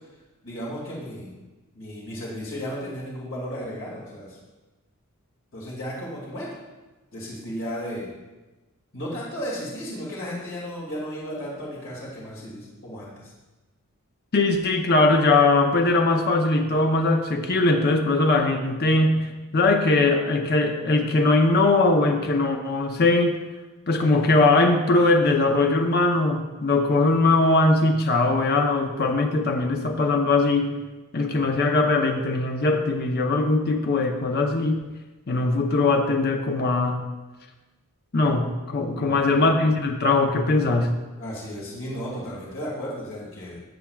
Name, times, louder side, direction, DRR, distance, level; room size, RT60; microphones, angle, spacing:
voice 1, 0.4-1.4 1.7-4.4 5.5-6.5 7.1-8.1 8.9-13.3 38.9-39.4 41.2-43.6, equal, 60° left, -5 dB, 2.3 m, -34 dB
voice 2, 14.3-19.3 19.5-23.4 23.9-30.7 31.1-34.8 35.3-37.0 38.1-40.9, left 2 dB, 45° left, 4 dB, 0.7 m, -21 dB
12.5 x 7.5 x 2.3 m, 1.1 s
head